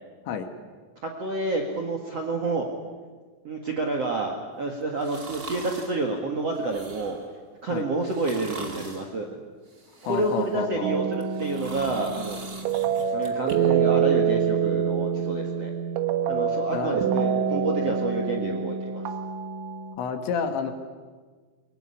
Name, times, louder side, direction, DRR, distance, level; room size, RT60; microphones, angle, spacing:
voice 1, 1.0-2.7 3.4-7.2 7.6-9.4 10.0-12.4 13.1-15.7 16.3-19.0, right 3 dB, 50° right, 1 dB, 2.0 m, -29 dB
sound 1, 5.0-6.0 6.5-7.3 8.0-9.1 9.7-10.6 11.1-13.6 14.0-14.1, right 2 dB, 30° right, 1.8 m, -42 dB
voice 2, 10.1-10.9 16.7-17.3 20.0-20.7, left 6 dB, 70° left, 7 dB, 3.8 m, -30 dB
sound 2, 10.8-20.0, right 7 dB, 75° right, 3.6 m, -26 dB
23.5 x 21.5 x 10.0 m, 1.5 s
omnidirectional pair, 5.6 m